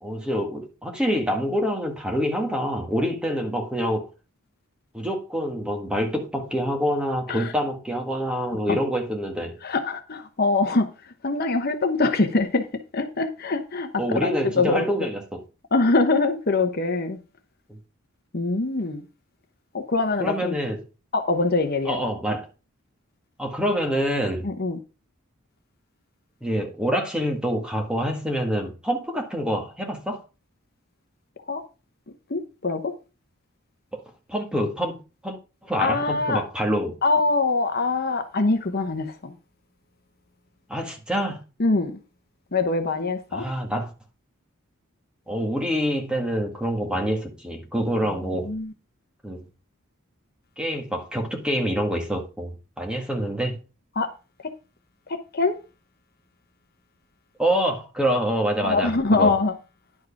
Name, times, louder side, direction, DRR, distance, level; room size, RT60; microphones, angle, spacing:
voice 1, 0.0-4.1 4.9-9.5 14.0-15.4 17.7-17.8 20.2-20.8 21.9-22.5 23.4-24.5 26.4-30.2 33.9-34.0 34.3-37.0 40.7-41.4 43.3-43.9 45.3-48.5 49.2-49.4 50.6-53.6 57.4-59.3, equal, 5° right, 1.7 m, -26 dB
voice 2, 9.6-12.7 12.9-14.3 14.6-14.8 15.7-17.2 18.3-19.0 19.7-20.6 21.1-22.0 24.4-24.8 31.5-31.6 32.3-32.9 35.8-36.4 37.0-39.3 41.6-42.0 42.5-43.4 48.3-48.7 54.0-54.1 54.4-54.5 55.1-55.6 58.6-59.5, left 3 dB, 50° left, 1.0 m, -23 dB
10.5 x 4.7 x 5.9 m
head